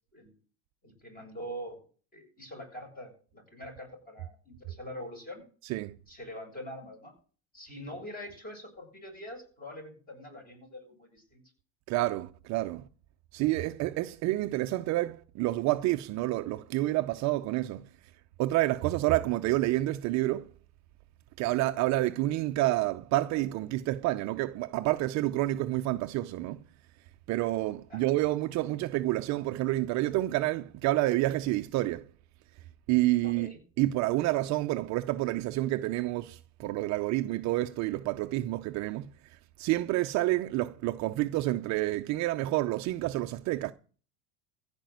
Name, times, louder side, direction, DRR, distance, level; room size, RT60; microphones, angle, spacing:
voice 1, 0.8-1.8 2.1-5.4 6.1-7.1 7.5-11.4 27.9-28.1 33.2-33.6, equal, 20° left, 7.3 m, -44 dB
voice 2, 11.9-12.8 13.3-17.9 18.4-20.5 21.4-26.6 27.3-32.0 32.9-33.5 33.8-39.1 39.6-43.7, right 17 dB, 40° right, 0.7 m, -29 dB
15.0 x 5.2 x 9.2 m
supercardioid pair, 140°, 41 cm